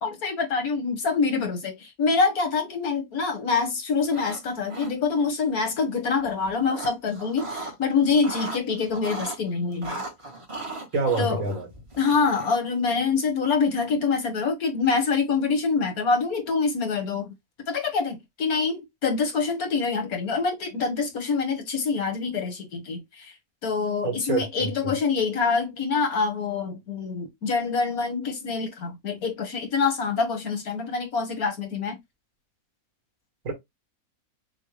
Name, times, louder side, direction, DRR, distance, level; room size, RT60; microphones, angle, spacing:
voice 1, 0.0-10.0 11.2-11.5 12.0-17.3 17.7-23.3 23.6-32.0, left 5 dB, 85° left, 1.9 m, -25 dB
sound 1, 4.0-4.4 4.7-5.3 6.2-7.8 8.1-9.4 9.8-12.7, right 2 dB, 25° right, 1.1 m, -37 dB
voice 2, 10.9-11.7 24.0-24.9 33.4-33.5, right 4 dB, 65° right, 2.2 m, -27 dB
6.2 x 2.3 x 3.2 m
omnidirectional pair, 1.5 m